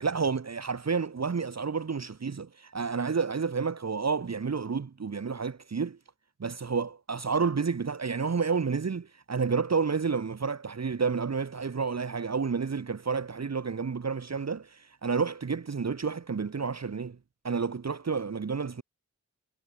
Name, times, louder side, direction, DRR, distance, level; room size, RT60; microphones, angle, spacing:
voice 1, 0.0-6.0 6.4-17.2 17.4-18.8, right 5 dB, 55° right, 1.0 m, -30 dB
wide cardioid pair, 80°, 32 cm